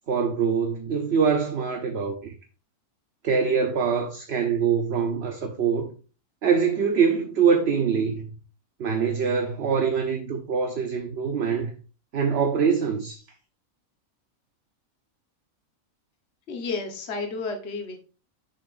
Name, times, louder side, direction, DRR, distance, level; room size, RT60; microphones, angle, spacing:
voice 1, 0.1-2.3 3.2-5.9 6.4-8.3 8.8-11.7 12.1-13.2, right 6 dB, 50° right, 1.0 m, -24 dB
voice 2, 16.5-18.0, left 4 dB, 50° left, 1.5 m, -31 dB
9.5 x 7.2 x 2.6 m
omnidirectional pair, 1.5 m